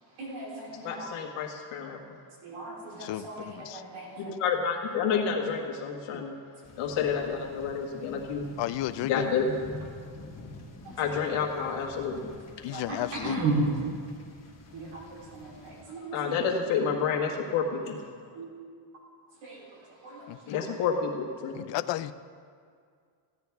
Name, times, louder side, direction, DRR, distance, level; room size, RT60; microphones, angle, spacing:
voice 1, 0.0-1.1 2.4-4.3 10.8-11.1 12.7-13.7 14.7-16.3 18.4-18.5 19.3-20.7, right 2 dB, 80° right, -4 dB, 3.5 m, -35 dB
voice 2, 0.8-2.0 4.2-6.4 6.8-8.5 9.0-9.5 11.0-12.3 16.1-17.6 20.5-21.7, left 6 dB, 80° left, 0 dB, 1.7 m, -29 dB
voice 3, 3.0-3.8 6.1-6.2 8.6-9.3 12.6-13.4 20.3-20.8 21.5-22.1, left 14 dB, 60° left, 14 dB, 0.5 m, -33 dB
sound 1, 6.6-15.8, left 2 dB, 30° left, 1.9 m, -47 dB
15.5 x 9.8 x 3.5 m, 2.2 s
cardioid pair, 95°, 49 cm